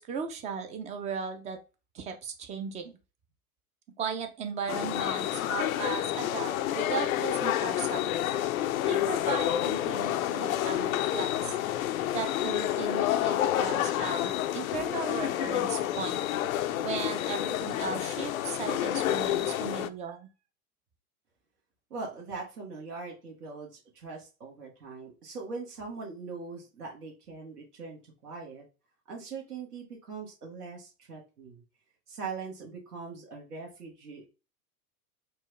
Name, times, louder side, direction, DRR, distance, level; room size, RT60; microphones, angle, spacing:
voice 1, 0.0-1.6 1.9-3.0 4.0-8.1 8.8-11.6 12.1-16.2 16.8-20.3, right 6 dB, 15° right, 6 dB, 0.4 m, -37 dB
sound 1, 4.7-19.9, left 12 dB, 65° left, 0.5 m, -29 dB
voice 2, 21.9-28.6 29.1-31.6 32.1-34.3, right 4 dB, 80° right, -2 dB, 1.6 m, -41 dB
4.4 x 2.2 x 3.1 m, 0.31 s
hypercardioid pair, 100°, 46 cm